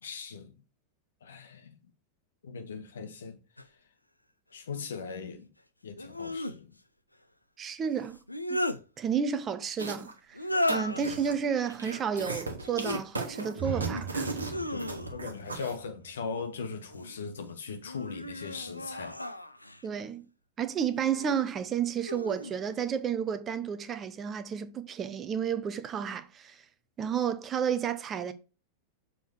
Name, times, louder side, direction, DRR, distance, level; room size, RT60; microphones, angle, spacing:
voice 1, 0.0-0.5 1.2-1.8 2.4-3.4 4.5-5.5 5.8-6.7 10.9-11.0 14.7-19.2, left 5 dB, 65° left, 1.2 m, -39 dB
sound 1, 3.6-3.7 6.0-6.6 8.1-8.8 10.3-11.1 12.6-13.0 13.5-14.1 14.5-15.4 16.6-17.2 17.8-19.8 20.9-21.4 22.0-22.5, left 1 dB, 85° left, 0.5 m, -35 dB
voice 2, 7.6-8.2 8.5-8.6 9.0-10.4 10.7-14.3 19.8-20.2 20.6-26.5 27.0-28.3, right 7 dB, 25° right, 0.8 m, -31 dB
sound 2, 9.8-10.2 10.5-11.3 11.7-15.7, right 3 dB, 80° right, 1.4 m, -36 dB
sound 3, 13.5-17.4, right 7 dB, 45° right, 1.2 m, -40 dB
7.0 x 3.7 x 4.6 m
figure-of-eight pair, 90°, 0 cm